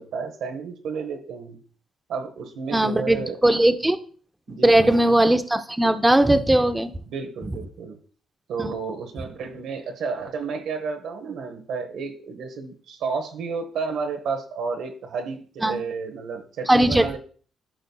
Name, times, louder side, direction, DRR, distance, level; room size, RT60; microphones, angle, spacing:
voice 1, 0.0-1.6 2.1-3.6 4.5-4.9 7.1-8.0 8.5-17.2, right 5 dB, 80° right, 5 dB, 1.1 m, -31 dB
voice 2, 2.7-4.0 4.6-6.9 8.6-8.7 15.6-15.8 16.7-17.2, right 1 dB, 10° right, 9 dB, 0.7 m, -19 dB
13.5 x 5.3 x 2.3 m, 0.43 s
cardioid pair, 90°, 0 cm